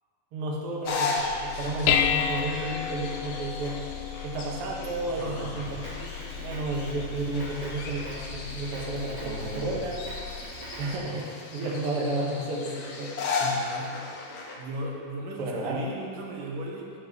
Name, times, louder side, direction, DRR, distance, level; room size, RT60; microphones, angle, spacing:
voice 1, 0.3-3.8 4.2-6.1 6.3-10.0 10.8-13.5 15.4-15.8, right 2 dB, 55° right, -2 dB, 1.8 m, -32 dB
sound 1, 0.8-14.6, left 4 dB, 65° left, 2.2 m, -36 dB
Dishes pots and pans, 1.2-10.4, left 9 dB, 80° left, 2.1 m, -33 dB
voice 2, 5.1-5.7 9.2-9.8 13.4-14.1 14.6-16.9, right 1 dB, 75° right, -2 dB, 2.8 m, -37 dB
Drum kit, 5.6-10.9, right 1 dB, 30° right, 2.1 m, -43 dB
15.5 x 7.7 x 3.8 m, 2.3 s
omnidirectional pair, 3.9 m